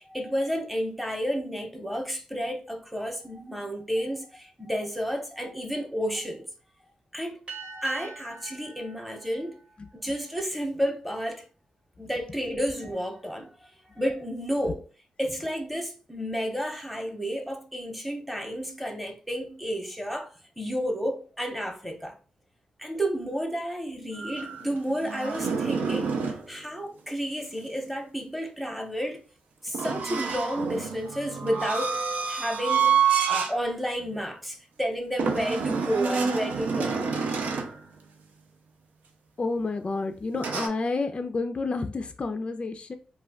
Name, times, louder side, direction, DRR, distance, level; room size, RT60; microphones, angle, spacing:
voice 1, 0.0-6.4 7.1-7.4 7.8-9.5 10.0-11.4 12.0-13.5 14.0-14.8 15.2-20.3 20.6-22.1 22.8-29.2 29.6-32.0 32.3-33.0 33.3-37.1, equal, ahead, 0.8 m, -31 dB
sound 1, 7.5-10.4, right 5 dB, 50° right, 0.8 m, -44 dB
sound 2, 24.1-26.5 29.7-33.6 34.0-34.2 35.2-37.8 40.3-40.7, right 6 dB, 85° right, 0.4 m, -27 dB
voice 2, 39.4-42.9, left 3 dB, 40° left, 0.3 m, -30 dB
2.3 x 2.2 x 3.4 m
cardioid pair, 55°, 3 cm